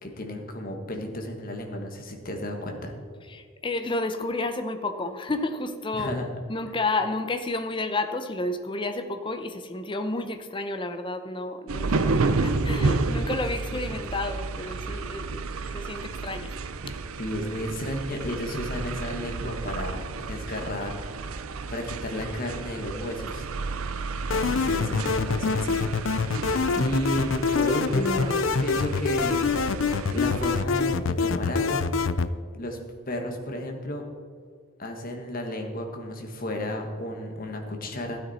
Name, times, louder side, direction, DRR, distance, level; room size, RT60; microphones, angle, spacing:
voice 1, 0.0-2.9 5.9-6.3 6.6-6.7 13.7-13.9 17.2-23.5 24.3-29.5 30.1-31.8 32.5-32.8 33.1-34.0 34.8-38.2, left 1 dB, 40° left, 3 dB, 1.5 m, -33 dB
voice 2, 3.3-6.1 6.5-15.5 15.7-16.5 26.4-27.0, left 2 dB, 25° left, 8 dB, 0.7 m, -31 dB
sound 1, 11.7-30.6, right 3 dB, 85° right, 0.6 m, -31 dB
sound 2, 24.3-32.3, left 4 dB, 65° left, 0.4 m, -25 dB
12.5 x 9.3 x 4.2 m, 2.1 s
head